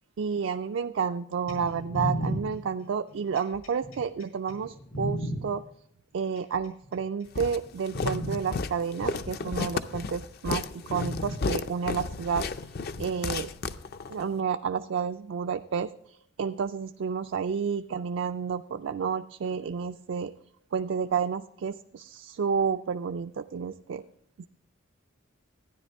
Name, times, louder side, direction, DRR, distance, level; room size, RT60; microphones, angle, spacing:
voice 1, 0.2-5.6 6.1-12.4 13.0-13.5 14.1-15.9 16.4-20.3 20.7-24.0 24.4-24.5, right 6 dB, 60° right, 8 dB, 0.3 m, -30 dB
sound 1, 1.5-5.4 6.4-7.0 7.5-7.6 7.9-8.4 9.5-9.6 10.9-11.4 12.5-12.6, equal, 90° left, 4.3 m, -33 dB
Walk footsteps, 7.4-14.3, left 4 dB, 50° left, 0.5 m, -33 dB
12.5 x 10.0 x 3.4 m, 0.74 s
head